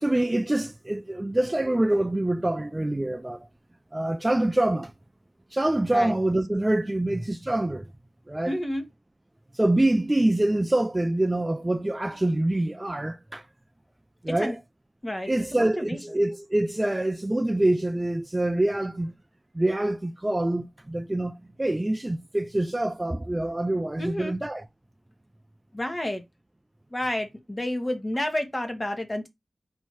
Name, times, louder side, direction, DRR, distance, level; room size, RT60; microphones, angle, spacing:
voice 1, 0.0-3.5 3.9-4.9 5.5-7.9 8.3-8.5 9.5-13.5 14.2-14.6 15.3-19.1 19.5-24.6, right 1 dB, 20° right, 0.4 m, -25 dB
voice 2, 8.5-8.8 14.3-14.5 15.0-16.0 24.0-24.3 25.7-26.2 26.9-29.3, left 1 dB, 25° left, 1.2 m, -30 dB
4.3 x 2.7 x 4.5 m
cardioid pair, 60°, 0 cm